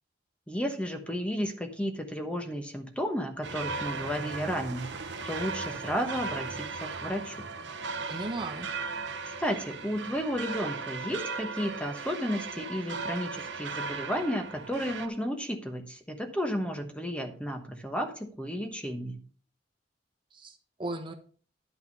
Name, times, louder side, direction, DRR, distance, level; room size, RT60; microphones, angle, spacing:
voice 1, 0.5-4.9 5.2-7.5 9.4-19.2, equal, 5° left, 5 dB, 1.1 m, -33 dB
sound 1, 3.4-15.1, right 4 dB, 90° right, 1.0 m, -37 dB
voice 2, 8.1-8.7 20.3-21.1, right 2 dB, 30° right, 3 dB, 1.2 m, -36 dB
11.0 x 5.9 x 5.3 m, 0.43 s
head